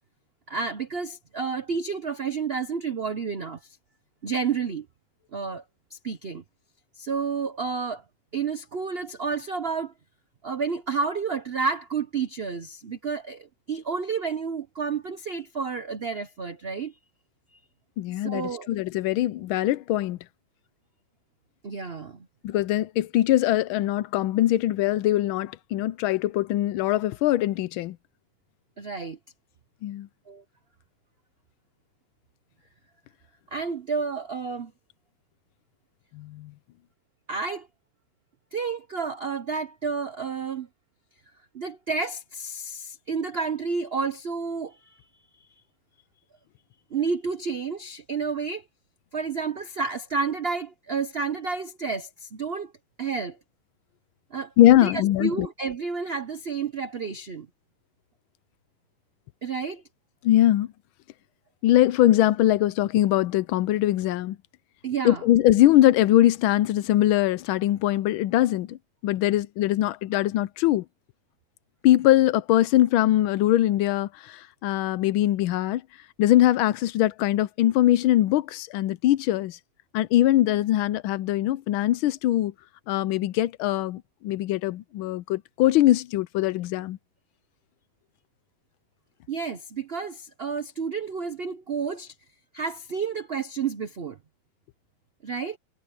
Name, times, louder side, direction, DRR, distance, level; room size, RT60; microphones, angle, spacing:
voice 1, 0.5-3.8 4.2-4.9 5.3-5.6 5.9-6.4 7.0-8.0 8.3-9.9 10.4-16.9 17.5-17.6 18.2-18.7 21.6-22.3 28.8-29.2 30.3-30.4 33.5-34.7 37.3-37.7 38.5-40.7 41.5-45.0 45.4-45.5 46.9-48.6 49.1-52.7 53.0-53.4 54.3-54.5 54.8-57.5 59.4-59.8 64.8-65.2 89.3-92.1 92.5-94.2 95.2-95.6, right 5 dB, 75° right, 0.5 m, -30 dB
voice 2, 18.0-20.2 22.4-28.0 29.8-30.1 36.1-36.5 54.6-55.5 60.2-60.7 61.6-64.4 65.0-68.8 69.0-70.8 71.8-75.8 76.2-79.6 79.9-82.5 82.9-87.0, left 14 dB, 80° left, 1.4 m, -22 dB
omnidirectional pair, 2.3 m